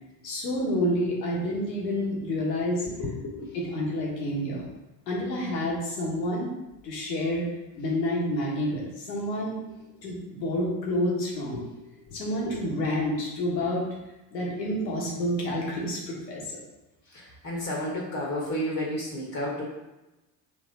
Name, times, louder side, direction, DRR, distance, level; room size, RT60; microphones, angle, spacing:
voice 1, 0.2-2.9 3.5-4.6 5.1-6.5 6.8-7.5 7.8-9.6 10.0-11.6 12.1-13.8 14.3-16.6, left 1 dB, 80° left, -3 dB, 1.3 m, -29 dB
voice 2, 3.0-3.5 11.5-11.6 12.3-12.6 14.4-14.5 17.1-19.6, left 1 dB, 30° left, -3 dB, 1.3 m, -32 dB
3.5 x 3.4 x 4.2 m, 1.0 s
hypercardioid pair, 65°, 49 cm